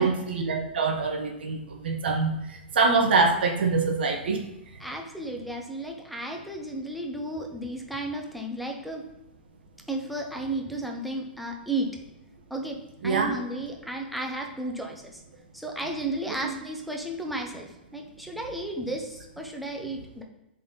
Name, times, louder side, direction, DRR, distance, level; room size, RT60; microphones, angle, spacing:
voice 1, 0.0-2.3 2.7-4.4 13.0-13.3 16.4-16.5, right 4 dB, 70° right, 4 dB, 1.3 m, -24 dB
voice 2, 4.8-9.0 9.9-11.9 12.5-12.8 13.0-15.2 15.5-20.2, right 1 dB, ahead, 0 dB, 1.0 m, -33 dB
7.2 x 4.3 x 4.1 m, 0.90 s
hypercardioid pair, 135°, 6 cm